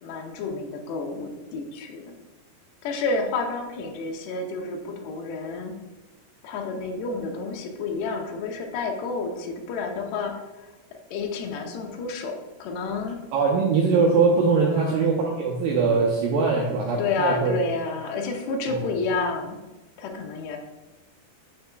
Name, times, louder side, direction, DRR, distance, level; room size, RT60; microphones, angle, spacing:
voice 1, 0.0-2.2 2.8-5.7 6.4-10.4 11.1-13.2 14.7-15.1 16.9-19.6 20.0-20.6, left 3 dB, 80° left, 3 dB, 2.7 m, -30 dB
voice 2, 13.3-17.6 18.7-18.8, right 4 dB, 80° right, -2 dB, 2.0 m, -22 dB
7.0 x 6.5 x 2.2 m, 1.1 s
omnidirectional pair, 4.7 m